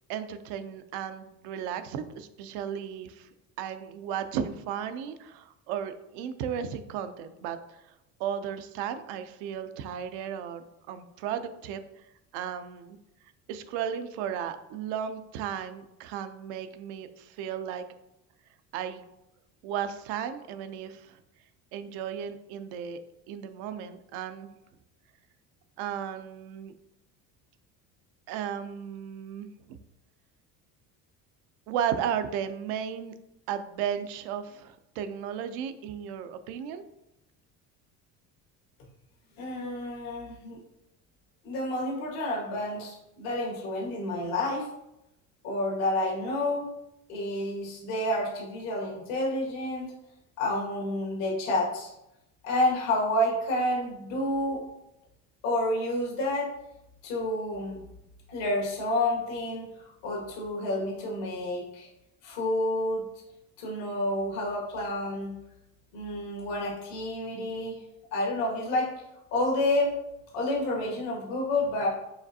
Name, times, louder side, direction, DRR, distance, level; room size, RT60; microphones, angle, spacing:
voice 1, 0.1-3.3 3.6-7.9 8.2-12.1 12.3-13.0 13.5-17.9 18.7-19.0 19.6-21.2 21.7-23.0 23.3-24.5 25.8-26.7 28.3-29.8 31.7-33.1 33.5-36.8, right 8 dB, 85° right, 10 dB, 0.5 m, -35 dB
voice 2, 39.4-40.6 41.4-44.7 45.4-46.7 47.1-49.9 50.4-51.9 52.4-54.6 55.4-56.5 57.0-57.8 58.3-59.7 60.0-61.9 62.2-63.1 63.6-65.3 65.9-67.7 68.1-68.9 69.3-69.9 70.3-71.9, left 1 dB, 90° left, -3 dB, 1.5 m, -29 dB
4.9 x 3.3 x 2.7 m, 0.87 s
supercardioid pair, 100°, 38 cm